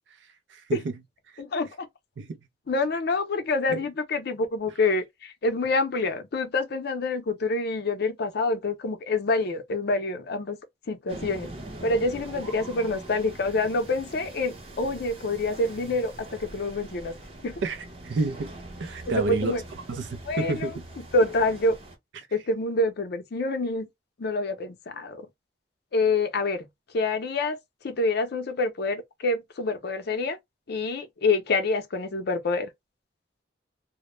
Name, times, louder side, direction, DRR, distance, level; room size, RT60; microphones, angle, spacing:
voice 1, 0.5-0.9 1.3-1.4 2.2-2.4 3.7-3.8 17.6-19.5 19.9-20.9 22.1-22.3, right 2 dB, 80° right, 0.4 m, -30 dB
voice 2, 1.4-1.9 2.7-10.6 10.9-11.5 11.8-17.1 17.4-17.6 19.1-19.6 20.3-20.7 21.0-21.8 22.3-23.9 24.2-25.3 25.9-26.7 26.9-27.6 27.8-30.4 30.7-32.7, left 2 dB, 60° left, 0.5 m, -27 dB
sound 1, 11.1-22.0, right 1 dB, 35° right, 0.7 m, -43 dB
2.1 x 2.0 x 2.9 m
head